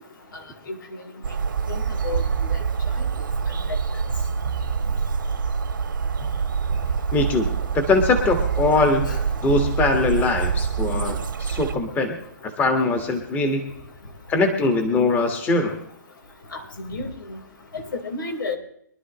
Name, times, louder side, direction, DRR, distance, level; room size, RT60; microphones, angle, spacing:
sound 1, 1.2-11.7, right 6 dB, 85° right, 1.8 m, -25 dB
voice 1, 1.7-2.2 2.5-2.6 9.1-9.2 16.5-17.4 18.0-18.6, left 3 dB, 80° left, 2 dB, 4.5 m, -31 dB
voice 2, 7.1-7.5 7.7-9.1 9.4-12.2 12.4-13.7 14.3-15.8, left 3 dB, 15° left, 5 dB, 1.7 m, -21 dB
24.0 x 12.0 x 3.1 m, 0.68 s
hypercardioid pair, 150°, 11 cm